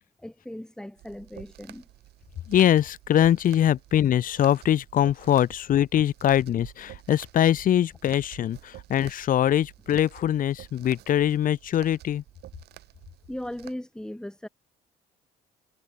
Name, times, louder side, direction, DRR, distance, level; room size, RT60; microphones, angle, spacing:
voice 1, 0.2-1.9 13.3-14.5, left 1 dB, 5° left, 5.9 m, -37 dB
sound 1, 1.0-13.7, right 15 dB, 75° right, 6.1 m, -49 dB
voice 2, 2.5-12.2, left 11 dB, 55° left, 1.5 m, -23 dB
cardioid pair, 110°, 17 cm